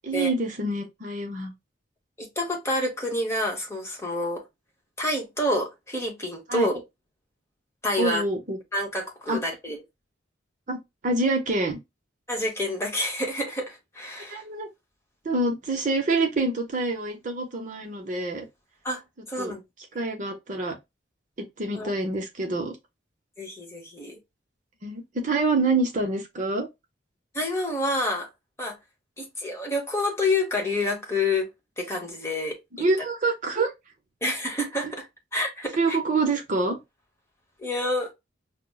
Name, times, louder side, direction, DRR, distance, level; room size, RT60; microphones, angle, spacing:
voice 1, 0.0-1.5 6.5-6.7 8.0-8.6 9.3-9.4 10.7-11.8 14.3-14.7 15.2-18.5 19.4-19.5 19.9-20.8 21.6-22.8 24.8-26.7 32.8-33.7 35.8-36.8, right 2 dB, 40° right, 0.6 m, -26 dB
voice 2, 2.2-4.4 5.0-6.8 7.8-8.2 8.7-9.8 12.3-14.4 18.8-19.0 19.3-19.6 21.7-21.9 23.4-24.2 27.3-28.3 28.6-28.8 29.2-31.5 31.8-32.8 34.2-35.1 35.3-36.0 37.6-38.1, left 1 dB, 15° left, 0.9 m, -28 dB
5.7 x 2.0 x 2.2 m
head